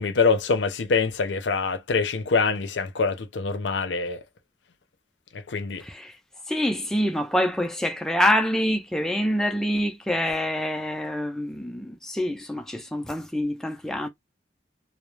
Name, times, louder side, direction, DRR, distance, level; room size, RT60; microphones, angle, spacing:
voice 1, 0.0-4.2 5.5-5.8, left 4 dB, 90° left, 0.5 m, -24 dB
voice 2, 5.8-6.1 6.5-14.1, equal, 5° left, 0.4 m, -26 dB
2.3 x 2.0 x 3.1 m
head